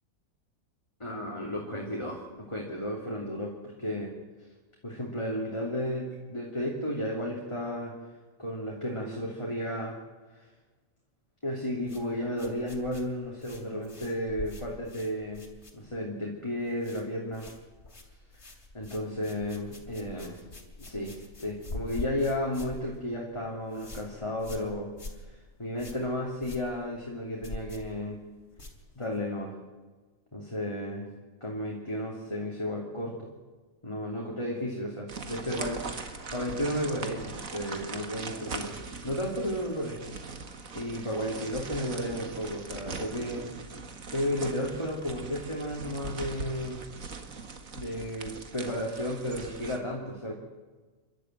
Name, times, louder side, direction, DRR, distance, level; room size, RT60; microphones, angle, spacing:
voice 1, 1.0-4.1 4.8-7.9 8.4-10.0 10.3-10.5 11.4-15.5 15.7-17.5 18.7-20.4 20.8-28.2 28.9-29.5 30.3-31.1 31.4-33.3 33.8-35.8 36.3-38.8 39.0-40.0 40.7-43.5 44.1-46.8 47.7-50.3, left 1 dB, 20° left, -2 dB, 3.1 m, -33 dB
sound 1, 11.8-16.2 16.4-17.1 17.3-29.3, left 2 dB, 50° left, 3.3 m, -45 dB
sound 2, 35.1-49.8, right 4 dB, 75° right, 2.2 m, -41 dB
29.0 x 12.5 x 9.2 m, 1.3 s
omnidirectional pair, 1.4 m